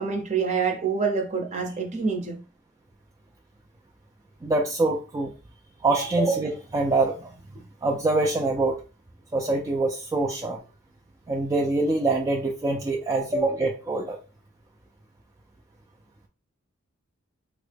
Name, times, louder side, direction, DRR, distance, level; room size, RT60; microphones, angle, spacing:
voice 1, 0.0-2.4 6.0-6.1 13.1-13.3, right 5 dB, 35° right, 0.7 m, -27 dB
voice 2, 4.4-5.3 5.8-7.3 7.8-8.8 9.3-10.6 11.3-14.2, right 2 dB, 20° right, 0.3 m, -24 dB
3.6 x 2.0 x 3.3 m
head